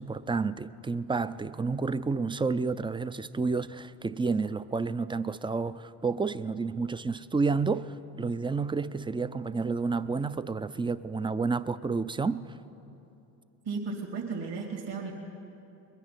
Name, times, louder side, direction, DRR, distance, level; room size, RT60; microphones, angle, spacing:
voice 1, 0.0-12.4, right 4 dB, 10° right, 0.4 m, -30 dB
voice 2, 13.7-15.1, right 4 dB, 60° right, 2.5 m, -34 dB
21.5 x 9.9 x 6.0 m
hypercardioid pair, 60°, 43 cm